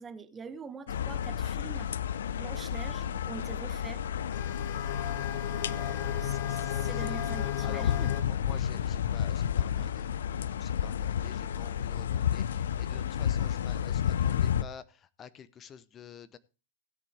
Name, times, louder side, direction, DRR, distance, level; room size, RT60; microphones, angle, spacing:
voice 1, 0.0-1.9 2.4-4.0 5.6-8.1, right 5 dB, 20° right, 1.1 m, -44 dB
sound 1, 0.9-14.6, left 9 dB, 70° left, 0.5 m, -31 dB
sound 2, 4.3-8.2, left 13 dB, 50° left, 1.4 m, -36 dB
voice 2, 5.6-7.2 7.6-16.4, left 8 dB, 25° left, 0.7 m, -50 dB
16.5 x 8.3 x 3.4 m
hypercardioid pair, 105°, 0 cm